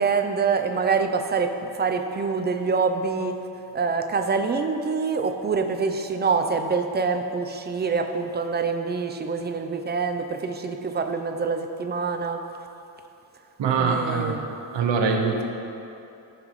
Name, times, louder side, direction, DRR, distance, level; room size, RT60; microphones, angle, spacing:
voice 1, 0.0-3.3 3.7-12.4 13.8-14.5, right 5 dB, 25° right, 6 dB, 0.4 m, -25 dB
voice 2, 13.6-14.5 14.7-15.4, right 4 dB, 75° right, 2 dB, 1.1 m, -23 dB
15.0 x 5.9 x 3.1 m, 2.8 s
wide cardioid pair, 165°, 45 cm